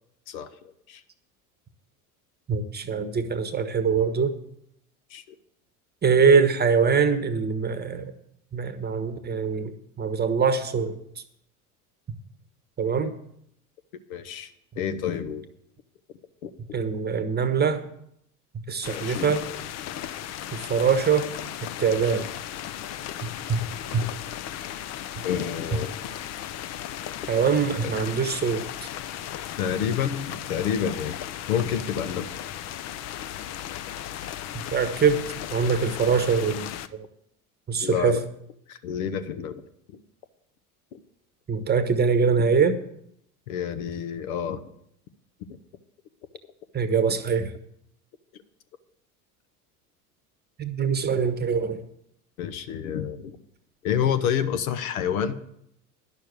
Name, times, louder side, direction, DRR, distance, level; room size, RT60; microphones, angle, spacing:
voice 1, 0.3-1.0 5.1-5.2 14.1-15.4 16.4-16.5 18.9-19.3 25.2-25.9 29.6-31.2 31.5-32.4 37.8-38.3 38.7-39.6 39.9-40.0 40.9-41.0 43.5-44.6 52.4-53.4 53.8-55.4, left 8 dB, 65° left, 10 dB, 1.0 m, -29 dB
voice 2, 2.5-4.3 6.0-8.1 8.5-11.0 12.8-13.2 16.7-17.8 18.7-19.4 20.5-21.3 21.8-22.3 23.2-23.6 23.9-24.0 27.3-28.6 34.7-35.2 35.5-37.1 37.7-38.2 41.5-42.8 46.7-47.5 50.6-51.8, right 5 dB, 20° right, 11 dB, 1.1 m, -23 dB
sound 1, 18.8-36.9, left 11 dB, 35° left, 0.6 m, -36 dB
11.0 x 6.6 x 8.0 m, 0.73 s
hypercardioid pair, 75°, 45 cm